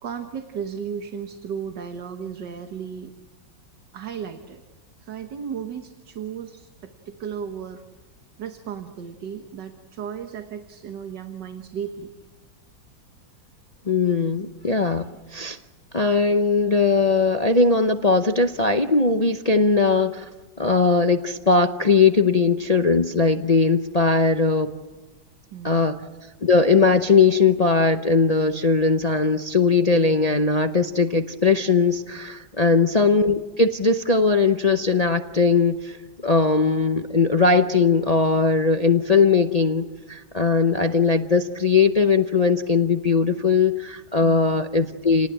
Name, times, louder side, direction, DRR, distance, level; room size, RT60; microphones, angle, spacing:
voice 1, 0.0-3.1 3.9-4.6 5.0-7.8 8.4-12.1 25.5-26.0 32.7-33.0 44.2-44.6, right 7 dB, 65° right, 6 dB, 1.8 m, -35 dB
voice 2, 13.9-15.6 15.9-20.3 20.6-24.7 25.6-26.0 26.4-36.0 36.2-45.3, left 4 dB, 60° left, 6 dB, 0.4 m, -19 dB
29.5 x 19.0 x 8.8 m, 1.3 s
omnidirectional pair, 2.1 m